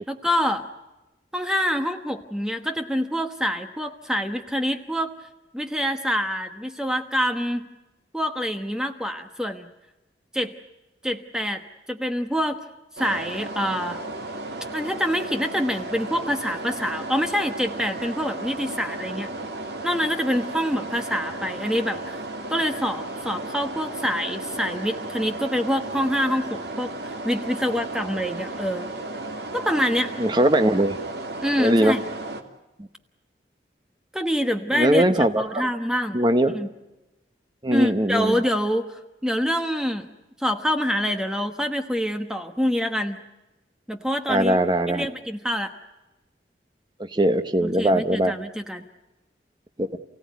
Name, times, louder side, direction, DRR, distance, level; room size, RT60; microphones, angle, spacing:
voice 1, 0.1-0.7 1.3-5.1 5.5-7.7 8.1-9.7 10.3-10.5 11.0-11.6 11.9-12.6 13.0-14.0 14.7-19.3 19.8-22.2 22.5-28.9 29.5-30.1 31.4-32.0 34.1-35.0 35.4-36.2 36.5-36.7 37.7-40.1 40.4-43.2 43.9-44.6 44.9-45.7 47.6-48.8, equal, 5° right, 6 dB, 1.1 m, -26 dB
sound 1, 13.0-32.4, right 2 dB, 75° right, 2.4 m, -34 dB
voice 2, 30.2-31.0 31.6-31.9 34.7-35.6 36.1-36.5 37.6-38.4 44.3-45.1 47.0-48.3 49.8-50.0, right 1 dB, 25° right, 7 dB, 1.0 m, -20 dB
29.0 x 17.0 x 9.3 m, 1.0 s
head